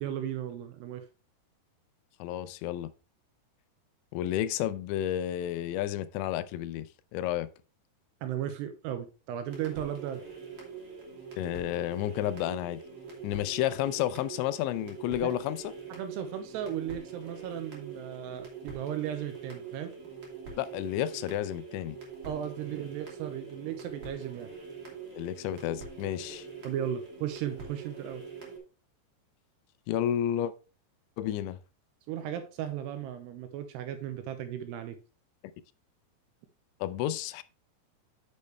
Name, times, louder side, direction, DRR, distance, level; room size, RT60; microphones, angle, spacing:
voice 1, 0.0-1.0 8.2-10.2 15.2-15.4 16.0-19.9 22.3-24.5 26.6-28.2 32.1-35.0, right 10 dB, 80° right, 2.6 m, -36 dB
voice 2, 2.2-2.9 4.1-6.9 7.1-7.5 11.4-12.8 13.2-15.7 20.6-22.0 25.1-26.5 29.9-30.5 31.2-31.6 36.8-37.4, left 12 dB, 85° left, 2.8 m, -31 dB
sound 1, 9.4-28.6, right 5 dB, 35° right, 2.9 m, -44 dB
8.5 x 6.7 x 3.2 m
omnidirectional pair, 5.3 m